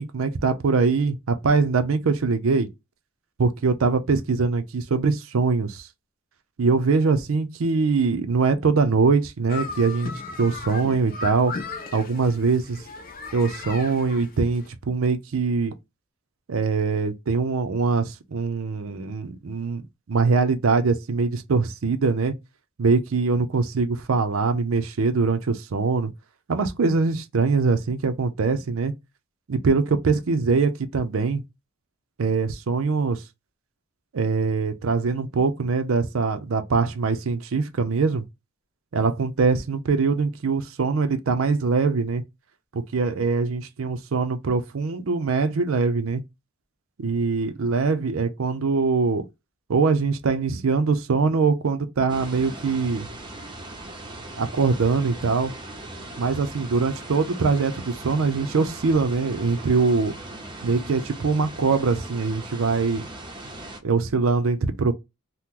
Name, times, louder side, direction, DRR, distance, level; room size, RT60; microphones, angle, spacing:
voice 1, 0.0-2.7 3.4-5.9 6.6-10.1 10.4-11.5 11.9-12.8 13.3-15.7 16.5-19.8 20.1-22.3 22.8-26.1 26.5-28.9 29.5-31.4 32.2-33.2 34.1-38.2 38.9-42.2 42.7-46.2 47.0-49.3 49.7-53.1 54.4-55.5 56.2-60.1 60.6-63.1 63.8-64.9, right 4 dB, 70° right, 0.5 m, -23 dB
sound 1, 9.5-14.7, left 4 dB, 45° left, 0.6 m, -36 dB
sound 2, 52.1-63.8, right 2 dB, 20° right, 0.6 m, -39 dB
2.9 x 2.1 x 3.6 m
head